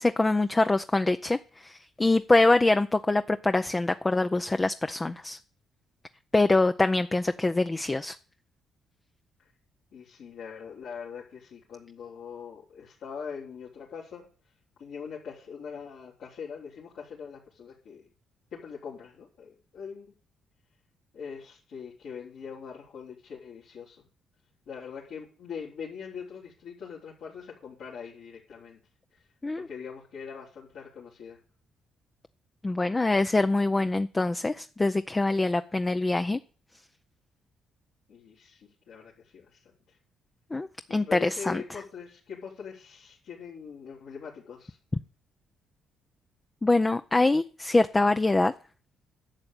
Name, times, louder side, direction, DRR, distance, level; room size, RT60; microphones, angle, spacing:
voice 1, 0.0-5.4 6.3-8.2 29.4-29.7 32.6-36.4 40.5-41.6 46.6-48.5, left 2 dB, 20° left, 9 dB, 0.5 m, -24 dB
voice 2, 9.9-14.3 14.8-18.0 18.5-20.1 21.1-24.1 24.7-28.8 29.1-29.2 29.6-31.4 38.1-40.0 40.9-44.8, left 6 dB, 75° left, -5 dB, 3.6 m, -42 dB
11.5 x 6.7 x 9.0 m, 0.40 s
cardioid pair, 90°, 0 cm